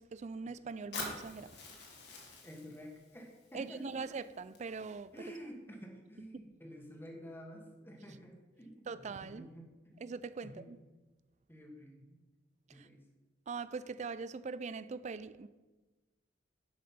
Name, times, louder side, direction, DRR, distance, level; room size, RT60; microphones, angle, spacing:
voice 1, 0.0-1.5 3.5-5.1 8.9-9.5 10.0-10.8 12.8-12.9 13.5-15.5, right 4 dB, 40° right, 0.4 m, -42 dB
Fire, 0.9-4.9, left 3 dB, 60° left, 2.0 m, -47 dB
voice 2, 2.4-4.1 5.1-10.0 10.4-10.7 11.5-12.2 12.7-13.0, equal, 10° left, 1.4 m, -50 dB
10.5 x 5.3 x 5.7 m
head